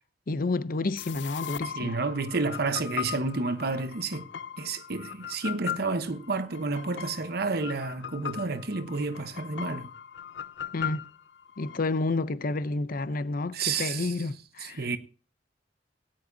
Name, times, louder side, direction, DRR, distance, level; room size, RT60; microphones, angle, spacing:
voice 1, 0.3-2.0 10.7-11.1 11.6-14.9, left 3 dB, 55° left, 0.6 m, -30 dB
sound 1, 1.0-11.8, left 8 dB, 90° left, 0.6 m, -39 dB
voice 2, 1.8-4.3 4.6-9.9 13.5-14.1 14.6-15.0, right 3 dB, 60° right, 1.0 m, -30 dB
18.0 x 10.5 x 2.7 m
head